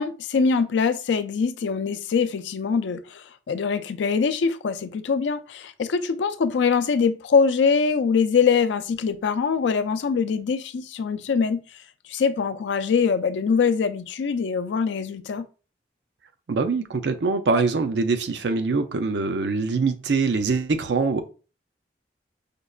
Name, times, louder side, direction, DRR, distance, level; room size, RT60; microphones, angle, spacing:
voice 1, 0.0-11.8 12.1-15.5, left 5 dB, 90° left, 0.4 m, -23 dB
voice 2, 16.5-21.2, right 4 dB, 75° right, 0.5 m, -23 dB
5.1 x 2.1 x 2.3 m
head